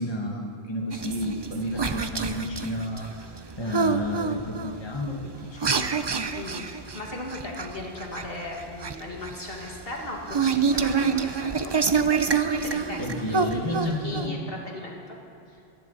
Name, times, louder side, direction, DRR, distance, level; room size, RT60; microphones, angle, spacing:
voice 1, 0.0-5.8 13.0-14.5, equal, 25° left, 0 dB, 1.5 m, -31 dB
sound 1, 0.9-14.3, right 5 dB, 30° right, 0.5 m, -27 dB
voice 2, 6.3-11.7 12.4-15.2 15.5-15.6, left 2 dB, 65° left, -1 dB, 2.3 m, -37 dB
24.0 x 11.0 x 4.1 m, 2.7 s
omnidirectional pair, 1.1 m